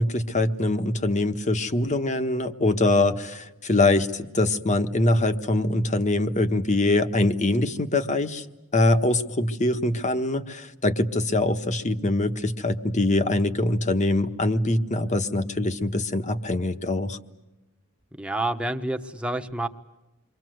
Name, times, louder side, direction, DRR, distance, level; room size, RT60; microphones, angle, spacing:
voice 1, 0.0-8.4 8.7-17.2, left 2 dB, 35° left, 8 dB, 1.4 m, -23 dB
voice 2, 18.2-19.7, right 1 dB, 5° right, 4 dB, 1.2 m, -28 dB
28.5 x 24.0 x 7.9 m, 0.99 s
head